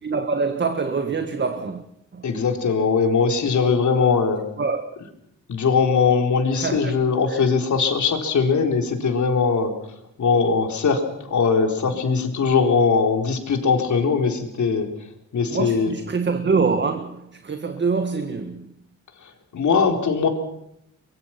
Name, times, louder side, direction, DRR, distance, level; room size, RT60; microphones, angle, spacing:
voice 1, 0.0-1.8 2.1-2.3 4.6-4.9 6.5-6.9 7.3-7.4 15.5-18.7, right 4 dB, 35° right, 1.8 m, -25 dB
voice 2, 2.2-4.5 5.5-9.7 10.2-14.9 15.3-15.9 19.2-20.3, left 5 dB, 70° left, 4.1 m, -20 dB
24.0 x 23.0 x 6.0 m
wide cardioid pair, 115°, 30 cm